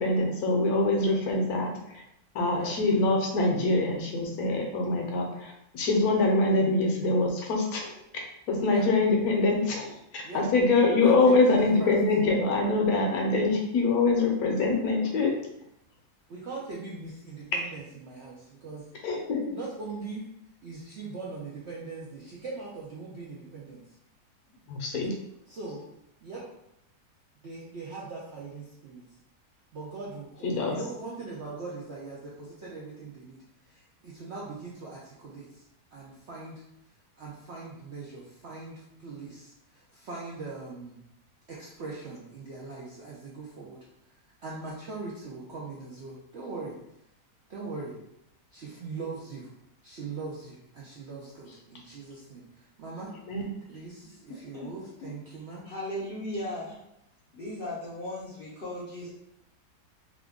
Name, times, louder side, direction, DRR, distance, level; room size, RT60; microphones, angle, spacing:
voice 1, 0.0-2.0 2.3-15.3 19.0-19.4 24.7-25.1 30.4-30.8 53.3-53.5, left 3 dB, 70° left, 1 dB, 1.0 m, -24 dB
voice 2, 11.0-11.9 16.3-18.9 19.5-20.2 20.6-23.8 25.5-25.8 26.2-26.4 27.4-29.0 29.7-35.6 35.9-36.6 37.2-41.0 41.5-43.8 44.4-46.8 47.5-48.0 48.5-49.5 49.8-53.1 53.7-55.6, right 3 dB, 70° right, -5 dB, 0.6 m, -40 dB
voice 3, 54.3-54.7 55.0-55.1 55.6-56.8 57.3-59.1, left 1 dB, 50° left, -6 dB, 0.6 m, -37 dB
2.9 x 2.4 x 3.4 m, 0.80 s
omnidirectional pair, 1.8 m